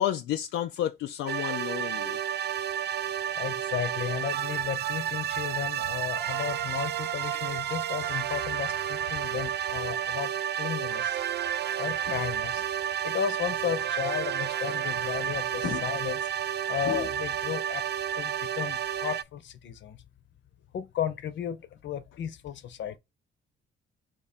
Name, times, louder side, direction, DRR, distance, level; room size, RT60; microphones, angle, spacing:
voice 1, 0.0-2.2, left 11 dB, 85° left, 0.4 m, -31 dB
sound 1, 1.3-19.2, right 10 dB, 60° right, 0.4 m, -31 dB
voice 2, 3.3-11.2 11.8-12.6 13.0-16.3 16.7-17.8 18.1-20.0 20.7-23.0, left 9 dB, 65° left, 0.8 m, -34 dB
3.7 x 3.0 x 4.3 m
cardioid pair, 90°, 20 cm